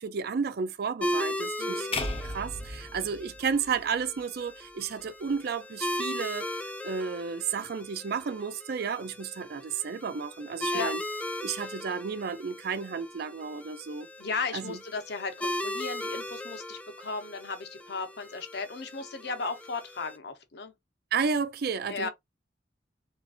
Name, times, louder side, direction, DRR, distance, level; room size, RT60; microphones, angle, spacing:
voice 1, 0.0-6.5 6.8-11.0 11.4-14.1 14.5-14.8 21.1-22.1, right 6 dB, 60° right, 0.4 m, -32 dB
sound 1, 1.0-20.2, left 1 dB, 10° left, 0.4 m, -37 dB
voice 2, 1.6-2.1 10.7-10.9 11.6-11.7 14.2-20.7 21.9-22.1, left 4 dB, 65° left, 0.8 m, -36 dB
sound 2, 1.9-4.2, left 2 dB, 35° left, 0.8 m, -36 dB
3.7 x 2.5 x 2.4 m
head